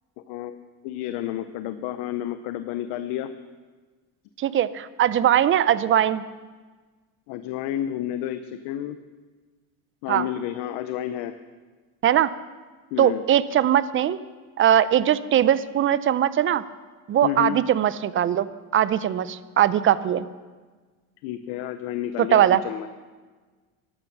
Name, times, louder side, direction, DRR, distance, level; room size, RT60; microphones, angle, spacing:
voice 1, 0.8-3.3 7.3-9.0 10.0-11.3 12.9-13.2 17.2-17.6 21.2-22.9, left 11 dB, 75° left, 11 dB, 0.8 m, -30 dB
voice 2, 4.4-6.2 10.1-10.3 12.0-12.3 13.0-14.2 14.6-16.6 17.1-18.5 18.7-20.3 22.2-22.6, right 11 dB, 30° right, 16 dB, 0.5 m, -20 dB
14.0 x 12.0 x 6.1 m, 1.4 s
cardioid pair, 125°, 39 cm